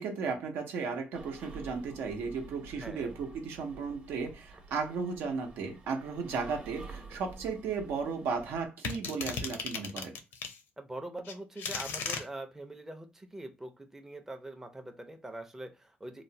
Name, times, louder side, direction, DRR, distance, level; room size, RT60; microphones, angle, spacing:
voice 1, 0.0-10.2, right 5 dB, 90° right, 0.7 m, -35 dB
sound 1, 1.1-8.7, right 3 dB, 35° right, 0.8 m, -50 dB
voice 2, 2.8-3.2 10.8-16.2, right 1 dB, 10° right, 0.4 m, -43 dB
sound 2, 8.8-10.6 11.2-12.2, left 5 dB, 80° left, 0.6 m, -36 dB
3.0 x 2.1 x 2.6 m
cardioid pair, 125°, 4 cm